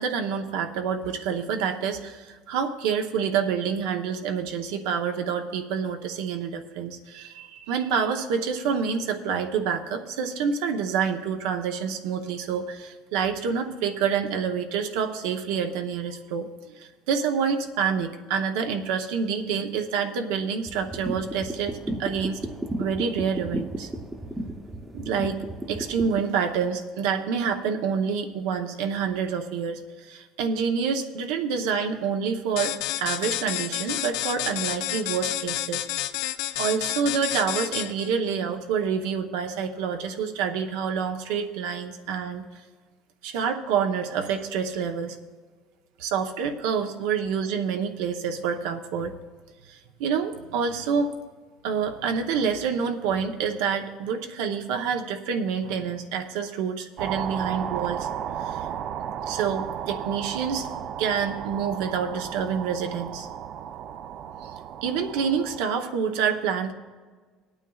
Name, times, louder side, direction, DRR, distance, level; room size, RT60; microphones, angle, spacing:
voice 1, 0.0-16.5 16.8-22.4 22.8-23.9 24.9-25.4 25.7-35.8 36.6-42.4 43.2-45.2 46.0-49.1 49.7-51.1 51.6-58.1 58.4-58.6 59.3-60.7 61.0-63.3 64.4-64.5 64.8-66.7, right 6 dB, 85° right, 5 dB, 0.8 m, -27 dB
sound 1, 20.7-26.2, right 1 dB, 10° right, 0.7 m, -34 dB
sound 2, 32.6-38.1, left 14 dB, 90° left, 0.4 m, -30 dB
sound 3, 57.0-65.7, right 9 dB, 50° right, 0.4 m, -34 dB
21.5 x 9.0 x 2.4 m, 1.5 s
cardioid pair, 135°, 0 cm